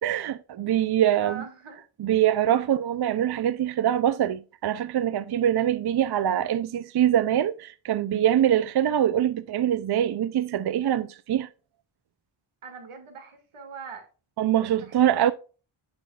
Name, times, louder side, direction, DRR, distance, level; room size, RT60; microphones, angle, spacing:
voice 1, 0.0-1.4 2.0-11.5 14.4-15.3, right 10 dB, 55° right, 0.5 m, -24 dB
voice 2, 1.2-1.8 12.6-14.1 14.7-15.3, right 6 dB, 90° right, 2.1 m, -42 dB
9.5 x 6.3 x 2.4 m
wide cardioid pair, 115°, 49 cm